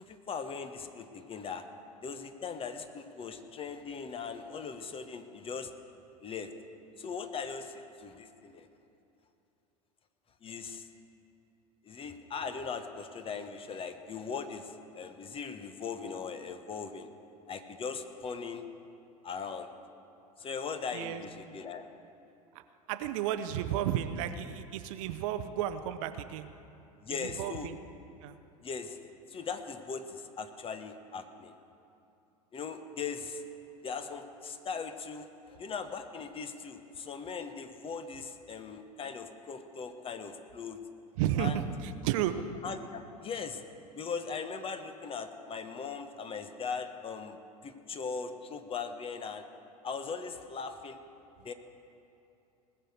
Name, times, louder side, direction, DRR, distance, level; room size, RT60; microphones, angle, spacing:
voice 1, 0.0-1.6 2.0-5.7 6.2-6.5 7.0-8.7 10.4-10.9 11.8-17.1 17.5-18.6 19.2-19.7 20.4-21.9 27.0-27.7 28.6-29.0 29.3-31.5 32.5-33.5 33.8-40.8 41.4-41.6 42.6-43.6 43.9-47.4 47.6-49.4 49.8-51.0 51.4-51.5, left 5 dB, 30° left, 8 dB, 1.1 m, -39 dB
voice 2, 20.9-21.6 22.5-22.6 22.9-26.5 27.2-27.8 28.2-28.4 41.2-42.3, right 11 dB, 55° right, 10 dB, 0.8 m, -33 dB
19.5 x 6.7 x 7.9 m, 2.8 s
figure-of-eight pair, 80°, 20 cm